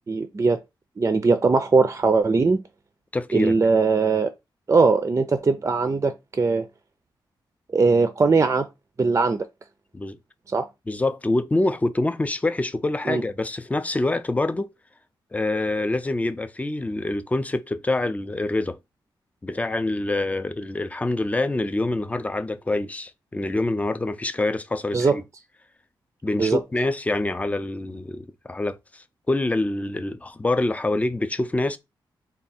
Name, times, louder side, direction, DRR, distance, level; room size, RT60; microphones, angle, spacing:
voice 1, 0.1-0.6 1.0-2.6 3.3-4.3 4.7-6.7 7.7-8.7 9.0-9.5 10.5-10.7 13.1-13.2 24.9-25.2 26.4-26.6, right 4 dB, 35° right, 0.5 m, -20 dB
voice 2, 3.1-3.6 9.9-10.2 10.9-14.7 15.3-18.8 19.4-25.2 26.2-31.8, left 2 dB, 15° left, 0.5 m, -26 dB
3.5 x 2.4 x 4.2 m
cardioid pair, 75°, 9 cm